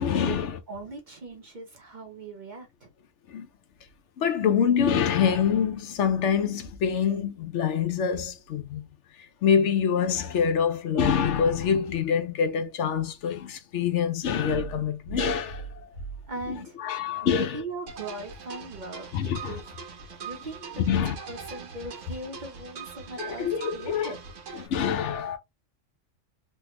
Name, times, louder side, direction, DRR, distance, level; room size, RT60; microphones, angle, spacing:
voice 1, 0.0-0.5 3.3-3.5 4.2-8.8 9.4-15.9 16.8-17.6 19.1-19.6 20.9-21.2 23.2-24.1 24.5-25.4, left 7 dB, 75° left, 0.9 m, -25 dB
voice 2, 0.7-2.9 16.3-16.8 17.2-21.0 21.3-24.2, right 2 dB, 45° right, 0.7 m, -40 dB
sound 1, 17.9-24.7, right 6 dB, 80° right, 1.2 m, -42 dB
3.4 x 2.2 x 2.9 m
omnidirectional pair, 1.3 m